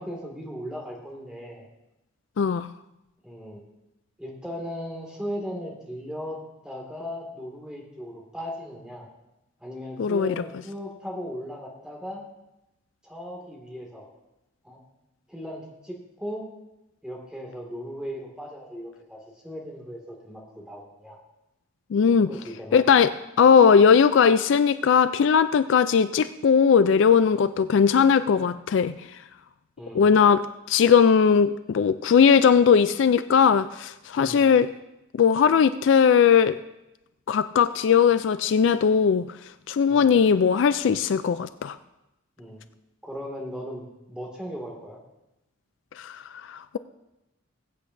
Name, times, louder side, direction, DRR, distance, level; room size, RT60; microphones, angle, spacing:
voice 1, 0.0-1.7 3.2-3.6 4.2-6.4 6.6-9.1 9.6-12.2 13.0-14.1 14.6-14.8 15.3-16.4 17.0-21.2 22.2-23.0 29.8-30.1 34.1-34.5 39.8-40.1 42.4-42.6 43.0-45.0, equal, 5° right, -2 dB, 2.0 m, -37 dB
voice 2, 2.4-2.7 10.0-10.3 21.9-22.3 22.7-23.1 23.4-28.9 29.9-30.4 30.7-34.7 35.1-36.5 37.3-39.2 39.7-41.8 46.0-46.2 46.5-46.8, left 6 dB, 60° left, 12 dB, 0.3 m, -19 dB
21.0 x 8.4 x 2.6 m, 0.92 s
head